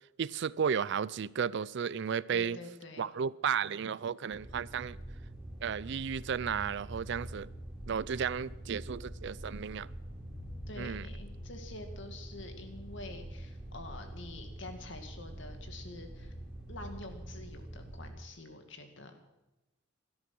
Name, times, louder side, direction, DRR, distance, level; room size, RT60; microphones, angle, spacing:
voice 1, 0.2-2.6 3.0-5.0 5.6-7.5 7.9-9.9 10.8-11.1, right 7 dB, 65° right, 0.4 m, -33 dB
voice 2, 2.3-3.1 10.7-16.3 16.7-19.2, left 2 dB, 65° left, 2.3 m, -47 dB
sound 1, 4.3-18.1, right 1 dB, 5° right, 3.7 m, -45 dB
17.5 x 13.0 x 6.1 m
head